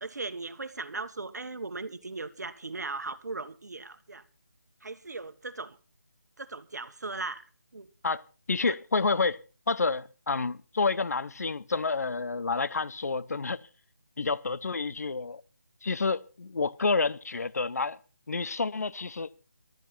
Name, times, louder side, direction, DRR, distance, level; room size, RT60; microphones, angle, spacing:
voice 1, 0.0-4.2 4.8-5.8 6.4-7.4 7.7-7.9, right 3 dB, 70° right, 1.6 m, -38 dB
voice 2, 8.5-9.4 9.7-13.6 14.2-15.4 15.8-18.0 18.3-19.3, left 4 dB, 60° left, 0.8 m, -29 dB
19.0 x 13.5 x 4.3 m
figure-of-eight pair, 165°, 10 cm